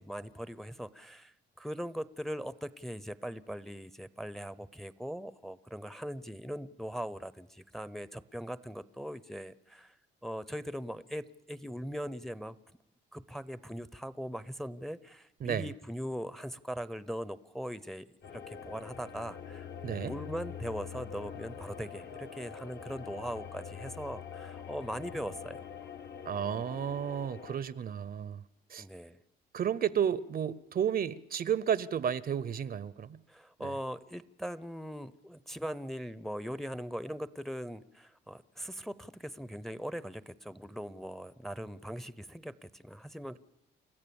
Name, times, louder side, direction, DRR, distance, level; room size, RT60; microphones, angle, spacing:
voice 1, 0.0-9.9 10.2-12.6 13.1-18.1 18.3-19.7 20.0-25.7 28.8-29.2 33.3-43.4, equal, ahead, 0.7 m, -40 dB
sound 1, 18.2-27.6, left 7 dB, 60° left, 1.4 m, -45 dB
voice 2, 19.8-20.1 26.3-28.4 28.7-28.9 29.5-33.2 33.6-33.8, right 8 dB, 50° right, 0.7 m, -32 dB
29.5 x 13.5 x 7.0 m
cardioid pair, 90°, 20 cm